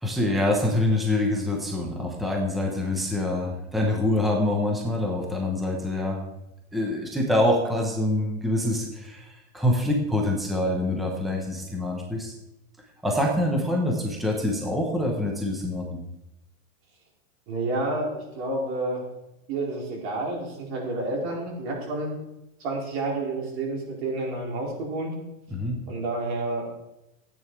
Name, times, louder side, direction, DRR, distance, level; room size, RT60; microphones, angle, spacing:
voice 1, 0.0-6.2 6.7-12.3 13.0-16.0 25.5-25.8, left 1 dB, ahead, 0 dB, 1.0 m, -25 dB
voice 2, 17.5-19.0 19.5-22.1 22.6-25.1 25.9-26.8, right 2 dB, 45° right, -2 dB, 4.4 m, -29 dB
14.5 x 9.1 x 4.7 m, 0.93 s
supercardioid pair, 165°, 41 cm